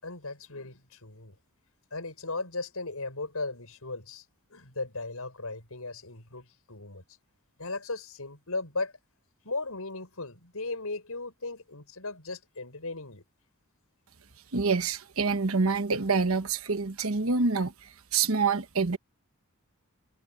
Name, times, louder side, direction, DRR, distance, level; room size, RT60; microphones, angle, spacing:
voice 1, 0.0-1.3 1.9-4.2 4.5-7.0 7.6-8.9 9.4-13.2, left 3 dB, 75° left, 6.5 m, -37 dB
voice 2, 14.5-17.7 18.1-19.0, right 4 dB, 65° right, 1.2 m, -26 dB
head